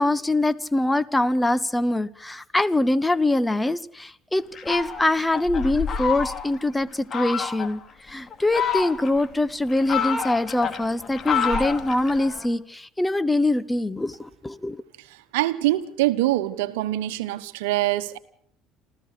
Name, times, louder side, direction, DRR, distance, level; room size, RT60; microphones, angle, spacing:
voice 1, 0.0-14.8, left 2 dB, 10° left, 1.0 m, -23 dB
Fowl, 4.6-6.6 7.1-7.7 8.3-9.2 9.7-12.5, left 7 dB, 40° left, 2.7 m, -28 dB
voice 2, 15.3-18.2, right 16 dB, 80° right, 1.1 m, -24 dB
28.0 x 15.0 x 6.7 m
hypercardioid pair, 65°, 0 cm